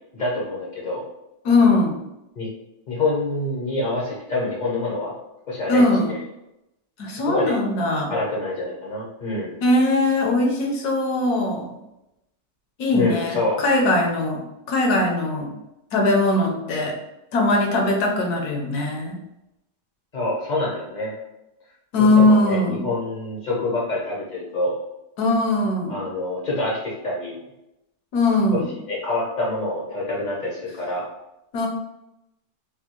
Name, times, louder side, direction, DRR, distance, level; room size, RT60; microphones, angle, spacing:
voice 1, 0.1-1.0 2.4-2.5 2.9-5.1 5.5-6.2 7.2-7.6 8.1-9.6 12.9-13.6 20.1-21.1 22.0-24.7 25.9-27.4 28.5-31.1, left 2 dB, 45° left, -4 dB, 0.6 m, -26 dB
voice 2, 1.4-2.0 5.7-6.1 7.0-8.1 9.6-11.7 12.8-15.5 15.9-17.0 17.3-19.2 21.9-22.8 25.2-26.0 28.1-28.7 31.5-31.7, left 2 dB, 70° left, 1 dB, 1.2 m, -20 dB
3.5 x 2.3 x 2.9 m, 0.89 s
omnidirectional pair, 1.8 m